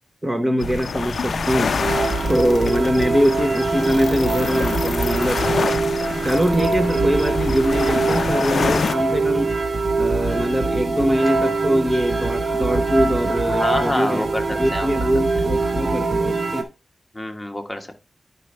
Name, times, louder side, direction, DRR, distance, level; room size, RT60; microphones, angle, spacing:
voice 1, 0.2-1.7 2.2-5.4 6.2-9.5 10.0-16.7, equal, 20° right, 0.9 m, -22 dB
sound 1, 0.6-8.9, left 5 dB, 75° left, 0.4 m, -27 dB
sound 2, 0.6-16.5, right 2 dB, 40° right, 1.5 m, -31 dB
sound 3, 1.8-16.6, right 3 dB, 70° right, 1.7 m, -24 dB
voice 2, 13.5-14.9 15.3-15.5 17.1-18.0, left 1 dB, 10° left, 1.3 m, -27 dB
10.5 x 5.3 x 3.3 m
wide cardioid pair, 105°, 0 cm